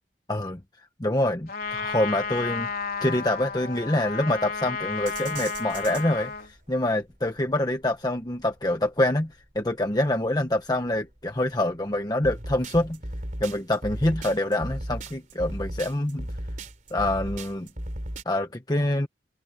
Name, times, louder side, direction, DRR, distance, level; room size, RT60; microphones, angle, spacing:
voice 1, 0.3-2.7 3.0-13.0 13.4-16.3 16.9-17.7 18.2-19.1, left 1 dB, 20° left, 1.2 m, -26 dB
Trumpet, 1.5-6.5, left 5 dB, 55° left, 4.0 m, -32 dB
sound 1, 1.6-18.2, right 1 dB, 45° right, 3.6 m, -37 dB
head